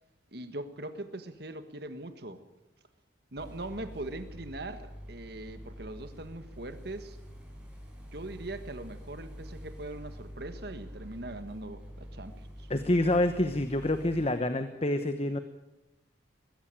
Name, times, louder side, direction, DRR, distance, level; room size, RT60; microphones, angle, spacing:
voice 1, 0.3-2.4 3.3-7.2 8.1-12.7, right 2 dB, 55° right, 10 dB, 1.5 m, -41 dB
sound 1, 3.4-14.2, equal, 5° right, 6.0 m, -46 dB
voice 2, 12.7-15.4, left 1 dB, 30° left, 9 dB, 1.0 m, -27 dB
20.5 x 16.0 x 9.0 m, 1.0 s
head